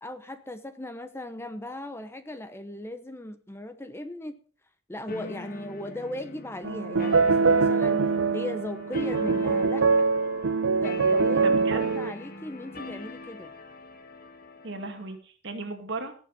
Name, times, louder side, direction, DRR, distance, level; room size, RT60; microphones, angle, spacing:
voice 1, 0.0-4.4 4.9-8.0 8.3-10.1 10.8-13.5, left 1 dB, 10° left, 10 dB, 0.9 m, -38 dB
sound 1, 5.1-15.2, left 2 dB, 45° left, 1.8 m, -42 dB
sound 2, 6.6-12.1, right 4 dB, 80° right, 0.6 m, -23 dB
voice 2, 11.3-11.8 14.6-16.1, right 3 dB, 60° right, 5 dB, 2.4 m, -36 dB
18.0 x 7.1 x 5.4 m, 0.41 s
head